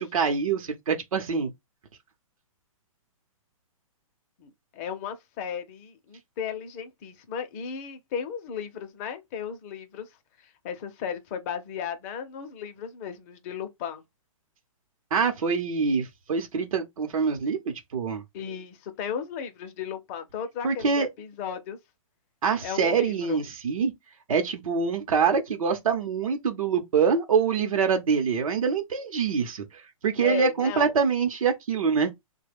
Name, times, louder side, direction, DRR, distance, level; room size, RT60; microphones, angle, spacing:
voice 1, 0.0-1.5 15.1-17.6 17.9-18.2 20.6-21.1 22.4-23.9 24.3-29.6 30.0-32.1, right 6 dB, 75° right, 0.7 m, -25 dB
voice 2, 4.4-10.1 10.4-14.0 18.3-21.8 22.6-23.4 30.2-30.9, left 8 dB, 25° left, 0.5 m, -35 dB
3.1 x 2.2 x 3.3 m
hypercardioid pair, 155°, 18 cm